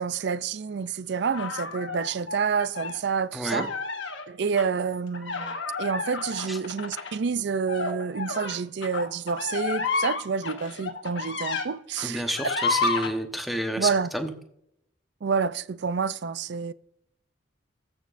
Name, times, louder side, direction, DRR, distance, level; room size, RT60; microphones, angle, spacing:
voice 1, 0.0-3.7 4.3-12.4 13.8-14.1 15.2-16.7, right 6 dB, 55° right, 0.4 m, -28 dB
sound 1, 1.3-3.0 3.4-4.2 4.6-4.7 5.1-11.7 12.0-13.1, left 4 dB, 65° left, 1.2 m, -31 dB
voice 2, 3.3-3.7 6.5-6.6 12.0-14.3, equal, ahead, 1.0 m, -30 dB
14.5 x 7.0 x 2.5 m
head